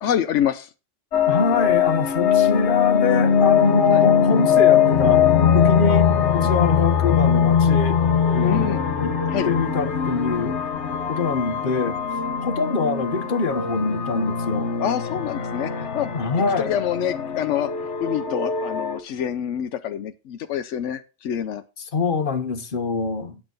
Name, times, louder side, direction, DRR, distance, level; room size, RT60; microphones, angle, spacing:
voice 1, 0.0-0.7 3.9-4.1 8.4-8.8 9.3-9.5 14.8-16.1 16.6-21.6, left 9 dB, 85° left, 1.0 m, -26 dB
sound 1, 1.1-19.0, left 8 dB, 70° left, 1.3 m, -21 dB
voice 2, 1.3-5.2 5.5-9.2 9.4-10.5 11.1-12.0 12.4-14.7 16.1-16.7 21.9-23.4, left 4 dB, 50° left, 1.2 m, -24 dB
8.9 x 7.2 x 5.3 m
omnidirectional pair, 1.2 m